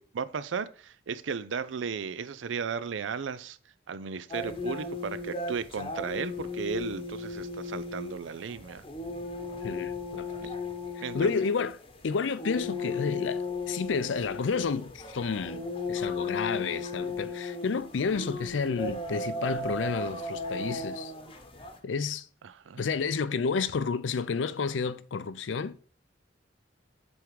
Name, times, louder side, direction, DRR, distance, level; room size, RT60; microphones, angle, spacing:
voice 1, 0.0-3.6 3.9-8.9 10.4-10.5 11.0-11.3 22.4-22.8, right 6 dB, 90° right, 0.5 m, -35 dB
sound 1, 4.3-21.8, left 3 dB, 30° left, 0.9 m, -36 dB
voice 2, 9.6-10.5 11.0-21.1 21.8-22.3 22.8-25.8, left 5 dB, 85° left, 0.5 m, -31 dB
7.9 x 3.6 x 4.7 m
head